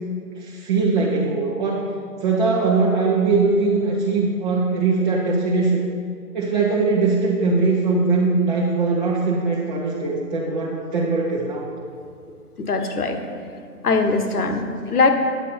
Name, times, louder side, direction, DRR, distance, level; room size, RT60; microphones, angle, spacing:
voice 1, 0.3-1.9 2.2-5.8 6.3-11.7, right 3 dB, 30° right, -4 dB, 0.9 m, -21 dB
voice 2, 12.6-13.2 13.8-15.1, left 4 dB, 70° left, 6 dB, 1.3 m, -21 dB
9.7 x 8.2 x 4.3 m, 2.3 s
hypercardioid pair, 150°, 47 cm